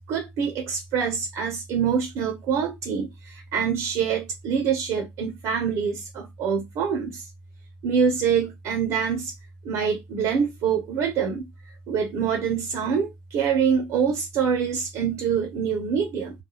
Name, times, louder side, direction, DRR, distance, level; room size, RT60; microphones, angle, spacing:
voice 1, 0.1-3.1 3.5-7.1 7.8-9.3 9.7-11.4 11.9-16.3, right 7 dB, 60° right, 0.7 m, -25 dB
2.4 x 2.2 x 2.9 m
cardioid pair, 120°, 6 cm